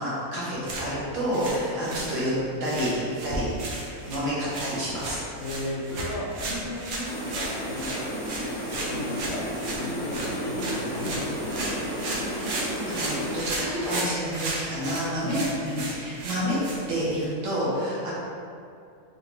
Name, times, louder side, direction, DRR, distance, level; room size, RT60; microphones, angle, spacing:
voice 1, 0.0-2.3 2.6-2.9 3.2-3.5 4.0-5.3 12.8-16.6 16.9-18.1, equal, 60° right, -8 dB, 1.2 m, -29 dB
sound 1, 0.5-17.3, right 2 dB, 85° right, 1.1 m, -35 dB
voice 2, 5.4-9.4 9.8-11.9 15.2-15.4, left 1 dB, 65° left, -5 dB, 0.8 m, -36 dB
sound 2, 7.0-13.4, equal, 30° right, 0.6 m, -32 dB
3.3 x 2.5 x 2.9 m, 2.5 s
omnidirectional pair, 1.5 m